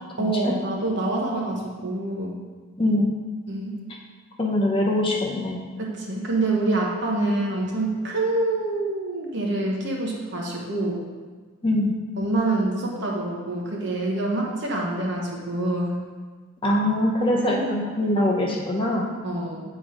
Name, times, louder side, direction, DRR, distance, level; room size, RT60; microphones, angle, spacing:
voice 1, 0.2-2.4 3.5-3.8 5.8-11.0 12.2-16.0 17.4-17.7 19.2-19.6, right 2 dB, 55° right, -2 dB, 1.2 m, -26 dB
voice 2, 4.4-5.6 11.6-11.9 16.6-19.1, left 1 dB, 25° left, -2 dB, 0.7 m, -23 dB
7.7 x 3.9 x 4.9 m, 1.4 s
head